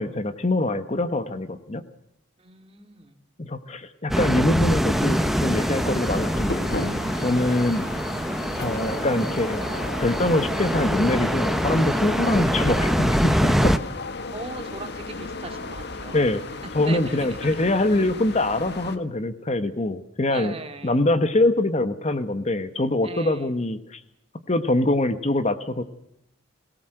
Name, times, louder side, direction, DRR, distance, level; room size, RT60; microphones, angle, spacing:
voice 1, 0.0-1.8 3.4-6.9 7.2-7.8 8.6-13.8 16.1-16.4 16.7-20.6 20.8-24.0 24.5-25.8, left 2 dB, 35° left, 11 dB, 1.2 m, -24 dB
voice 2, 2.4-3.2 14.3-16.2 16.6-17.6 20.3-21.0 23.0-23.5, right 2 dB, 30° right, 7 dB, 2.3 m, -38 dB
sound 1, 4.1-13.8, equal, ahead, 0.8 m, -24 dB
sound 2, 4.9-19.0, left 3 dB, 55° left, 1.6 m, -35 dB
23.0 x 17.5 x 7.8 m, 0.80 s
head